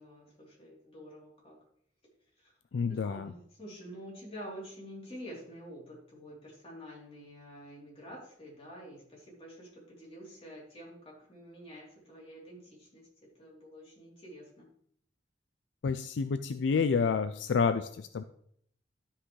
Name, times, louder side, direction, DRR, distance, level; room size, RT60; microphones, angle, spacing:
voice 1, 0.0-1.6 2.4-2.5 2.9-13.1 13.3-14.7, equal, 30° left, -4 dB, 3.3 m, -48 dB
voice 2, 2.7-3.3 15.8-18.2, left 5 dB, 75° left, 11 dB, 0.4 m, -29 dB
12.5 x 5.6 x 3.2 m, 0.68 s
head